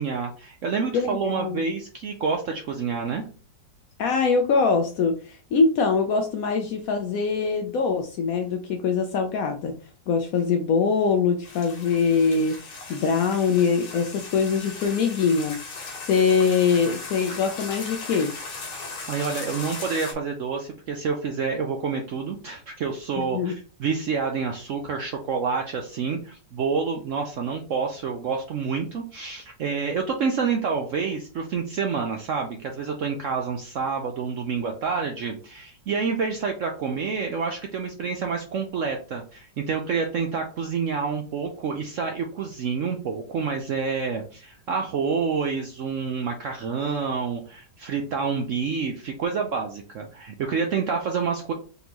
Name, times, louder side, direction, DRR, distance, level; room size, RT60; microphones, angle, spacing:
voice 1, 0.0-3.2 18.7-51.5, right 5 dB, 70° right, 3 dB, 0.7 m, -28 dB
voice 2, 0.9-1.6 4.0-9.8 10.1-15.6 16.0-18.4 23.2-23.5, left 5 dB, 70° left, 5 dB, 0.8 m, -23 dB
sound 1, 11.4-20.1, left 3 dB, 90° left, 1.8 m, -38 dB
4.0 x 3.4 x 2.9 m, 0.38 s
omnidirectional pair, 1.9 m